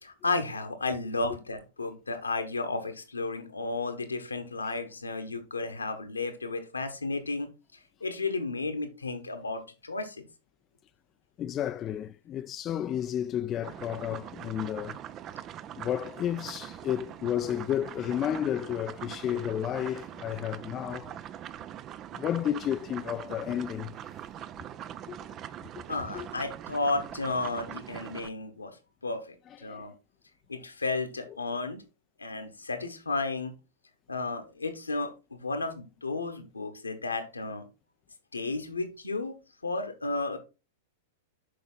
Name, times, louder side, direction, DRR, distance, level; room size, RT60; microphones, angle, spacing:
voice 1, 0.0-7.5 8.0-10.2 25.9-28.8 29.0-29.9 30.5-31.8 32.2-33.5 34.1-37.6 38.3-40.4, left 3 dB, 80° left, 1.1 m, -33 dB
voice 2, 11.4-15.0 15.8-21.1 22.1-24.1 25.1-25.2 26.1-26.3 29.6-29.9, left 10 dB, 30° left, 0.4 m, -32 dB
sound 1, 13.6-28.3, right 10 dB, 30° right, 0.4 m, -42 dB
6.8 x 5.1 x 3.9 m
figure-of-eight pair, 95°, 0 cm